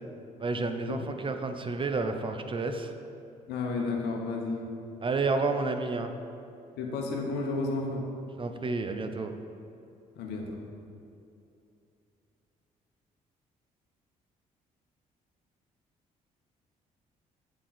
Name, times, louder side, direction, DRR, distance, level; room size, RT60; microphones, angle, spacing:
voice 1, 0.4-2.9 5.0-6.1 8.4-9.3, right 3 dB, 30° right, 7 dB, 0.6 m, -30 dB
voice 2, 3.5-4.7 6.8-8.1 10.1-10.6, left 3 dB, 75° left, 1 dB, 0.9 m, -32 dB
8.6 x 3.7 x 4.2 m, 2.7 s
hypercardioid pair, 55°, 17 cm